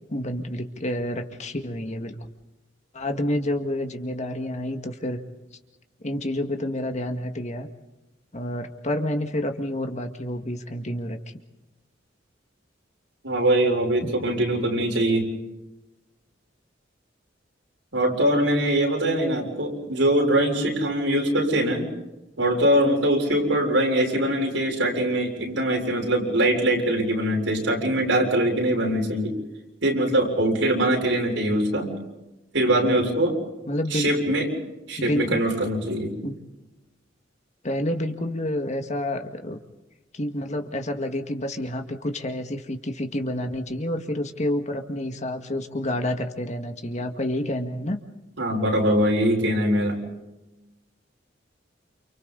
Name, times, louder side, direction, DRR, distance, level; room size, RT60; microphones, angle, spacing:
voice 1, 0.1-2.2 2.9-5.2 6.0-7.7 8.3-11.4 14.0-14.1 33.7-34.1 35.0-35.4 36.2-36.4 37.6-39.6 40.1-48.0, left 1 dB, 40° left, 5 dB, 2.0 m, -29 dB
voice 2, 13.2-15.3 17.9-21.9 22.4-29.4 29.8-31.9 32.5-33.4 33.9-34.5 34.9-36.2 48.4-50.0, right 1 dB, 75° right, -1 dB, 7.0 m, -22 dB
29.5 x 29.0 x 4.2 m, 1.0 s
head